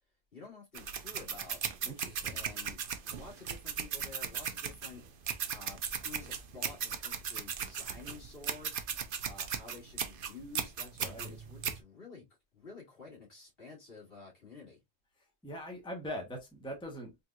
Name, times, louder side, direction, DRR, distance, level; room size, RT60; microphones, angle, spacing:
voice 1, 0.3-1.6 2.3-5.0 5.5-8.8 9.2-12.3 12.5-14.8, left 4 dB, 55° left, 2.7 m, -51 dB
sound 1, 0.7-11.8, right 7 dB, 55° right, 0.8 m, -37 dB
voice 2, 1.8-2.4 11.0-11.3 15.4-17.2, equal, 5° left, 1.1 m, -42 dB
4.4 x 3.8 x 2.4 m
omnidirectional pair, 1.2 m